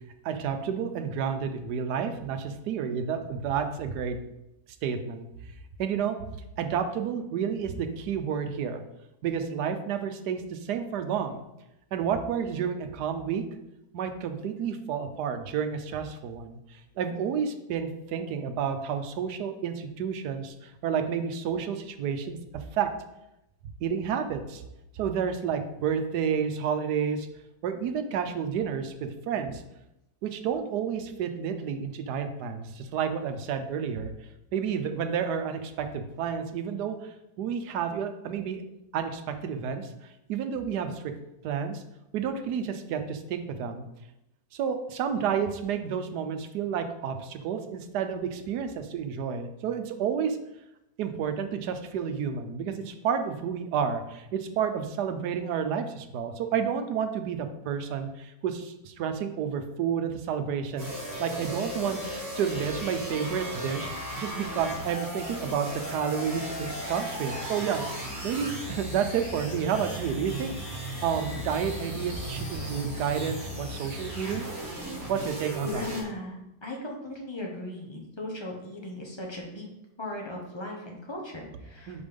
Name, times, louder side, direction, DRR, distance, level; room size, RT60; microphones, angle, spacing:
voice 1, 0.2-4.2 4.8-5.3 5.8-6.2 6.6-8.8 9.2-11.4 11.9-13.4 13.9-22.9 23.8-24.6 24.9-27.3 27.6-29.6 30.2-34.1 34.5-38.6 38.9-39.9 40.3-41.1 41.4-41.8 42.1-43.9 44.5-50.4 51.0-60.9 61.2-62.0 62.4-67.8 68.2-70.5 71.0-74.5 75.1-75.8 81.9-82.0, right 7 dB, 85° right, 8 dB, 1.3 m, -30 dB
sound 1, 60.8-76.0, right 1 dB, 40° right, 2.0 m, -36 dB
sound 2, 65.7-74.5, left 3 dB, 55° left, 0.6 m, -46 dB
voice 2, 75.6-79.7 80.0-82.0, left 1 dB, 20° left, 0 dB, 1.1 m, -38 dB
5.2 x 4.6 x 5.2 m, 0.87 s
omnidirectional pair, 1.7 m